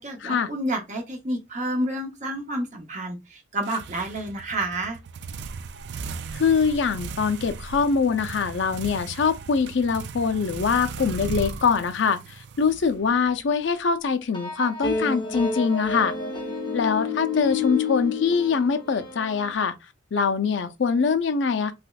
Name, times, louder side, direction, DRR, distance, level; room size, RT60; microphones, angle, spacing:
voice 1, 0.0-5.0, right 1 dB, 40° right, 0.7 m, -29 dB
sound 1, 3.6-13.4, right 5 dB, 60° right, 0.3 m, -37 dB
voice 2, 6.3-16.1 16.7-19.7 20.1-21.7, left 5 dB, 65° left, 0.5 m, -23 dB
sound 2, 14.3-19.5, left 5 dB, 20° left, 0.6 m, -29 dB
3.3 x 3.0 x 2.3 m
head